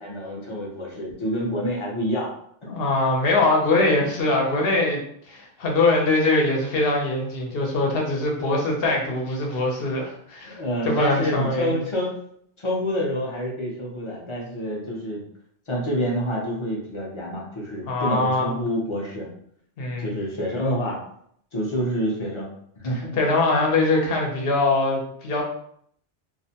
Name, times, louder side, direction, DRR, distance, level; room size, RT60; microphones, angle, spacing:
voice 1, 0.0-2.3 10.4-12.1 12.6-15.2 15.7-19.3 20.0-21.0 21.5-22.5 22.8-23.2, equal, 35° left, -3 dB, 0.5 m, -27 dB
voice 2, 2.7-5.0 5.3-10.6 10.8-11.8 17.9-18.5 19.8-20.2 23.2-25.4, left 2 dB, 60° left, 0 dB, 0.8 m, -22 dB
2.4 x 2.1 x 2.7 m, 0.67 s
omnidirectional pair, 1.2 m